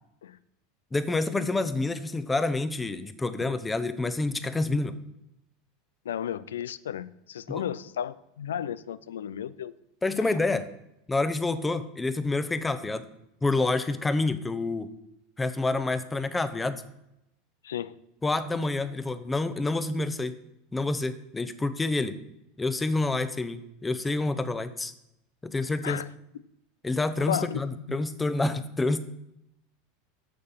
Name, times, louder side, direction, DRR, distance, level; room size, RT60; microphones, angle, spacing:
voice 1, 0.9-5.0 7.5-7.6 10.0-10.7 11.1-13.0 13.4-14.9 15.4-16.8 18.2-20.4 20.7-22.2 22.6-24.9 25.4-26.0 26.8-29.0, left 2 dB, 15° left, 12 dB, 0.8 m, -28 dB
voice 2, 6.1-9.7 17.6-17.9 25.8-26.1 27.2-28.0, left 9 dB, 85° left, 18 dB, 0.4 m, -34 dB
8.6 x 6.8 x 5.7 m, 0.83 s
hypercardioid pair, 100°, 0 cm